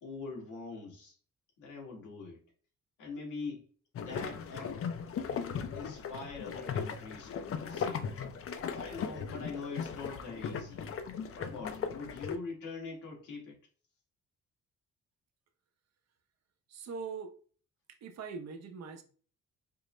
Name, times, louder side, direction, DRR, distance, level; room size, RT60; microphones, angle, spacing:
voice 1, 0.0-1.2 1.6-2.4 3.0-3.7 4.0-4.7 5.3-8.1 8.7-10.9 11.3-13.6, left 3 dB, 90° left, -2 dB, 1.6 m, -43 dB
sound 1, 4.0-12.4, left 6 dB, 50° left, 0.5 m, -38 dB
voice 2, 16.7-17.3 17.9-19.0, right 5 dB, 60° right, 6 dB, 0.7 m, -42 dB
5.2 x 2.1 x 3.1 m, 0.42 s
cardioid pair, 90°, 30 cm